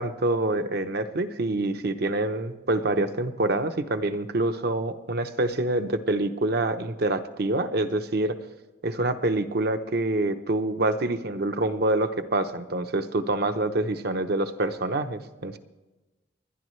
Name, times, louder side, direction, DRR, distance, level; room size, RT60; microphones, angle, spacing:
voice 1, 0.0-8.4 8.8-15.6, right 2 dB, 60° right, 9 dB, 0.9 m, -26 dB
29.5 x 11.0 x 3.2 m, 1.1 s
head